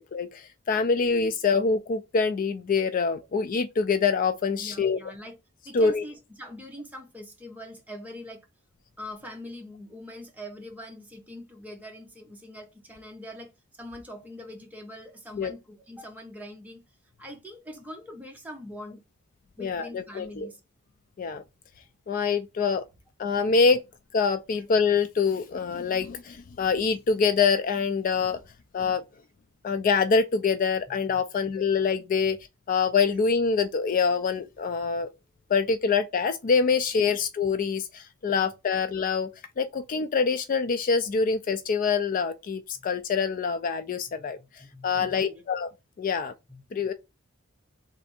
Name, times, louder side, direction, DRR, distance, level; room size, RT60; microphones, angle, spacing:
voice 1, 0.1-5.0 5.7-6.0 15.4-15.5 19.6-20.5 21.2-21.4 22.1-22.8 23.2-23.8 24.1-28.4 28.7-29.0 29.6-32.4 32.7-35.1 35.5-39.3 39.6-44.4 44.8-45.7 46.0-46.3 46.7-46.9, left 5 dB, 40° left, 0.3 m, -25 dB
voice 2, 4.6-5.4 5.6-8.5 9.0-16.8 17.2-19.0 19.6-20.6 30.9-31.0 37.1-37.2 42.7-42.9 44.4-45.4 46.5-46.6, left 1 dB, 10° right, 0.9 m, -43 dB
3.3 x 2.6 x 4.0 m
head